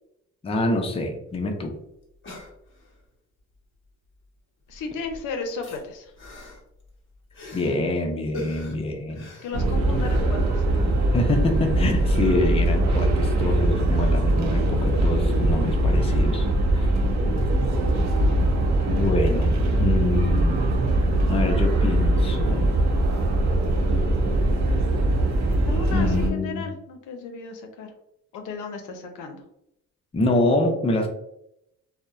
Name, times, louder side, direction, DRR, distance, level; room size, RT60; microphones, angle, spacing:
voice 1, 0.4-1.7 7.5-9.3 11.1-16.9 18.8-20.6 21.3-22.8 25.9-26.7 30.1-31.1, left 2 dB, 20° left, 3 dB, 0.4 m, -26 dB
sound 1, 1.3-1.4 1.6-1.7 2.0-3.1 4.1-4.4 4.7-7.9 8.3-10.2 10.6-10.7, left 1 dB, 40° left, 0.9 m, -42 dB
voice 2, 4.7-6.1 9.4-11.1 25.7-27.9 28.3-29.4, left 4 dB, 80° left, 5 dB, 0.5 m, -34 dB
sound 2, 9.5-26.3, right 1 dB, 65° right, 0.6 m, -21 dB
2.7 x 2.0 x 2.3 m, 0.79 s
cardioid pair, 90°, 30 cm